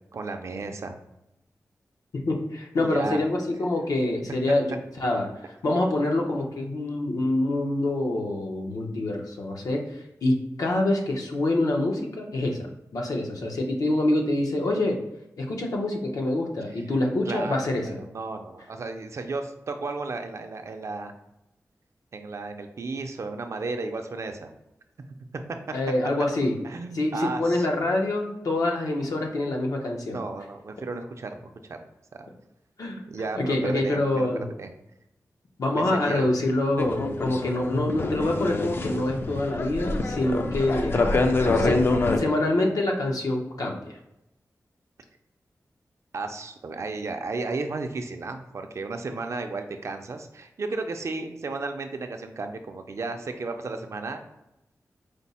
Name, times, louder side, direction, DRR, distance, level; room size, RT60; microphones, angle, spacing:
voice 1, 0.1-1.0 2.8-3.2 16.8-16.9 17.3-21.1 22.1-24.5 26.6-27.9 30.0-31.8 32.1-32.3 33.1-34.7 35.7-36.3 41.1-41.4 46.1-54.2, right 3 dB, 50° right, 6 dB, 0.4 m, -34 dB
voice 2, 2.3-4.7 5.0-5.3 5.6-12.6 12.9-15.0 15.4-17.9 25.7-26.6 26.9-30.2 32.8-33.0 33.3-34.5 35.6-41.0 41.6-41.8 42.2-44.0, left 2 dB, 75° left, 1 dB, 0.7 m, -26 dB
sound 1, 36.8-42.2, left 3 dB, 40° left, 0.3 m, -26 dB
5.0 x 2.0 x 4.1 m, 0.87 s
wide cardioid pair, 140°, 6 cm